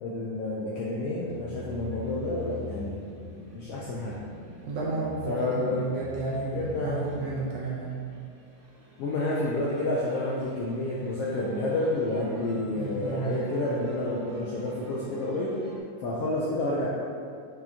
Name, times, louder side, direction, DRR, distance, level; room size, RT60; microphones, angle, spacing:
voice 1, 0.0-3.3 3.5-4.2 5.3-5.8 6.5-7.1 9.0-15.6 16.0-16.9, left 2 dB, 75° left, -5 dB, 1.4 m, -29 dB
sound 1, 1.2-15.8, left 2 dB, 50° right, 0.8 m, -45 dB
voice 2, 4.7-8.0 12.7-13.5, right 3 dB, 75° right, -5 dB, 1.6 m, -32 dB
6.6 x 6.0 x 2.8 m, 2.3 s
omnidirectional pair, 3.4 m